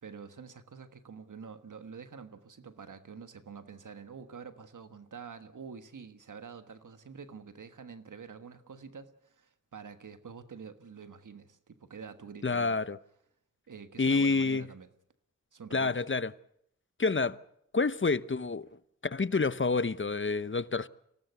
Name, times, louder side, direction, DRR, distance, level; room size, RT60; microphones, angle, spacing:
voice 1, 0.0-12.8 13.7-14.9 15.5-16.0, right 6 dB, 90° right, 1.5 m, -47 dB
voice 2, 12.4-13.0 14.0-14.6 15.7-16.3 17.0-17.4 17.7-18.7 19.0-20.9, left 4 dB, 40° left, 0.8 m, -28 dB
25.0 x 18.0 x 8.1 m
cardioid pair, 40°, 30 cm